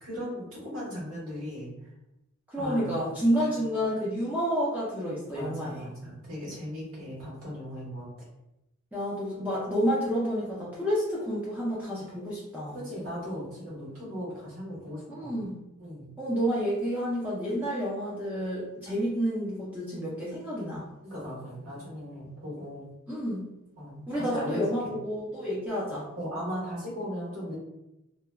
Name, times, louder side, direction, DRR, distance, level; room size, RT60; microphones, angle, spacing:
voice 1, 0.0-1.7 2.6-3.1 3.4-3.6 5.3-8.3 12.7-15.3 15.8-16.1 21.0-22.9 23.8-25.0 26.1-27.6, equal, 85° right, -7 dB, 1.4 m, -37 dB
voice 2, 2.5-5.8 8.9-12.8 15.1-15.5 16.2-20.8 23.1-23.4 24.1-26.1, equal, 5° right, -8 dB, 0.4 m, -29 dB
3.0 x 2.1 x 2.2 m, 0.91 s
head